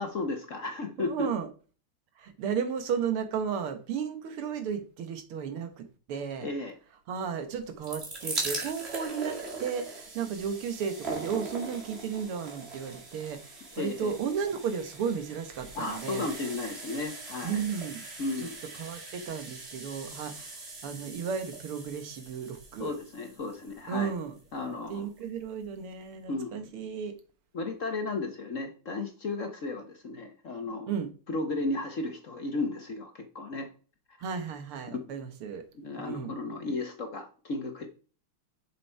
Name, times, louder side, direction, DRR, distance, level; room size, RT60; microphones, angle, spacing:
voice 1, 0.0-1.3 6.4-6.7 13.7-14.1 15.7-17.6 18.2-18.6 22.8-24.1 24.5-25.1 26.3-26.7 27.5-30.9 31.3-33.7 34.9-35.0 35.7-37.9, left 3 dB, 50° left, 1.1 m, -34 dB
voice 2, 1.0-1.5 2.2-6.5 7.1-16.3 17.4-18.0 18.8-23.0 23.9-27.1 30.9-31.1 34.2-35.7 36.0-36.4, right 7 dB, 90° right, 2.1 m, -34 dB
sound 1, 7.6-24.6 25.4-25.5 25.7-25.8, right 3 dB, 30° right, 2.3 m, -41 dB
7.0 x 7.0 x 4.6 m
omnidirectional pair, 2.3 m